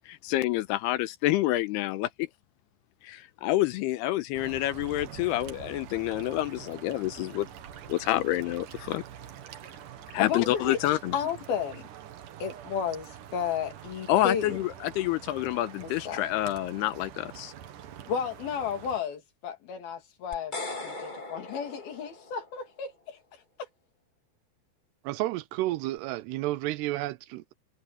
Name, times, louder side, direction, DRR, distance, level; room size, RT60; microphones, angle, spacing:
voice 1, 0.1-2.3 3.0-7.5 7.9-9.0 10.1-11.1 14.1-17.5, left 15 dB, 80° left, 2.7 m, -28 dB
sound 1, 4.3-19.0, right 10 dB, 60° right, 2.6 m, -45 dB
voice 2, 10.2-10.8 11.1-11.9 12.4-14.6 16.1-16.2 18.1-20.5 20.8-23.2 23.6-23.7, left 7 dB, 65° left, 4.2 m, -32 dB
sound 2, 20.3-22.6, left 2 dB, 20° left, 1.2 m, -39 dB
voice 3, 25.0-27.5, right 16 dB, 80° right, 2.6 m, -31 dB
omnidirectional pair, 4.9 m